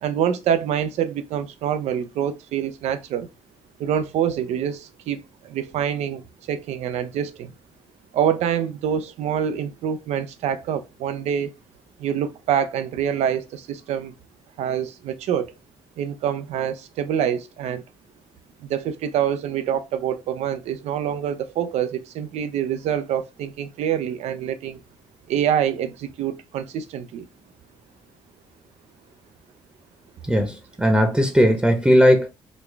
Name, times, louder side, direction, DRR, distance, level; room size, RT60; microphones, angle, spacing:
voice 1, 0.0-3.3 3.8-7.5 8.1-11.5 12.0-14.1 14.6-15.5 16.0-17.8 18.6-24.8 25.3-27.3, right 9 dB, 75° right, 0.5 m, -26 dB
voice 2, 30.3-32.3, equal, 10° right, 0.8 m, -17 dB
3.9 x 2.3 x 3.2 m
supercardioid pair, 60°, 11 cm